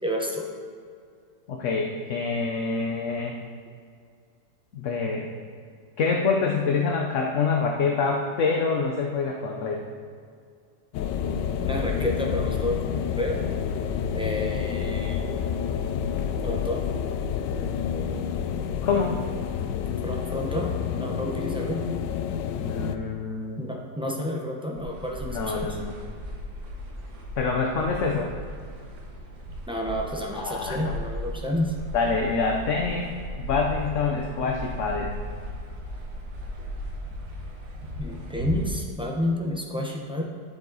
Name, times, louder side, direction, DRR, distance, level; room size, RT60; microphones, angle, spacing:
voice 1, 0.0-0.5 11.6-12.8 13.2-13.4 14.1-15.2 16.4-16.9 20.0-21.9 23.6-25.8 29.7-31.7 38.0-40.2, left 1 dB, 5° right, -1 dB, 0.4 m, -30 dB
voice 2, 1.5-3.3 4.7-5.3 6.0-9.8 18.8-19.2 22.6-23.6 25.3-25.9 27.4-28.3 30.3-30.9 31.9-33.1 33.4-35.1, left 4 dB, 55° left, 1 dB, 0.9 m, -26 dB
sound 1, 10.9-23.0, left 7 dB, 85° left, 1.2 m, -29 dB
sound 2, 24.8-38.8, equal, 70° right, 1.8 m, -36 dB
11.0 x 7.3 x 4.0 m, 2.2 s
omnidirectional pair, 1.9 m